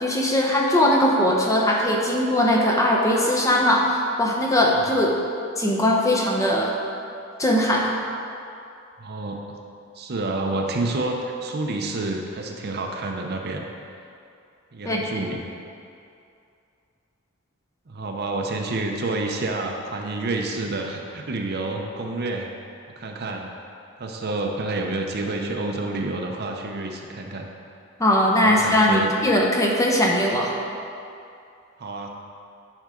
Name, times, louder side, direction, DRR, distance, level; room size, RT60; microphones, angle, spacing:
voice 1, 0.0-5.1 5.6-6.7 7.4-7.9 14.8-15.0 28.0-30.5, left 1 dB, 15° left, -1 dB, 0.8 m, -20 dB
voice 2, 9.0-9.6 9.9-13.6 14.7-15.5 17.9-22.5 23.0-23.5 24.0-27.5 28.4-29.1 31.8-32.1, right 2 dB, 50° right, 2 dB, 0.7 m, -29 dB
10.0 x 5.5 x 3.8 m, 2.5 s
head